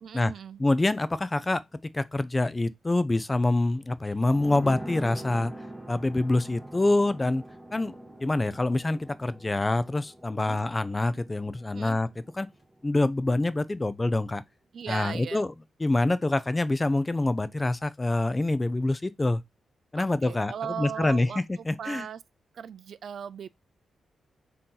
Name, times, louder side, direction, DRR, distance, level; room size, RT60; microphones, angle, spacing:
voice 1, 0.0-0.6 10.4-10.6 11.7-12.0 14.7-15.4 19.9-22.2 22.5-23.5, right 8 dB, 65° right, 0.3 m, -38 dB
voice 2, 0.6-1.6 1.9-5.5 5.9-7.4 7.7-7.9 8.2-12.1 12.4-12.5 12.8-14.4 14.9-15.5 15.8-19.4 19.9-22.1, left 2 dB, 20° left, 0.4 m, -26 dB
sound 1, 4.2-13.5 13.8-13.9, right 1 dB, ahead, 1.7 m, -44 dB
3.8 x 2.8 x 3.8 m
cardioid pair, 90°, 0 cm